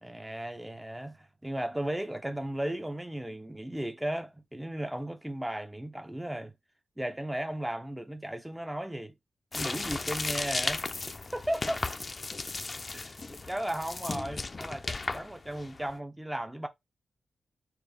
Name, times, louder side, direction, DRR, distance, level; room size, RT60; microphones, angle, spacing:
voice 1, 0.0-6.5 7.0-9.1 9.5-10.9 11.3-11.8 12.9-16.7, right 1 dB, 5° right, 0.8 m, -35 dB
sound 1, 9.5-15.9, left 3 dB, 35° left, 0.7 m, -35 dB
4.5 x 4.4 x 4.9 m
wide cardioid pair, 105°, 0 cm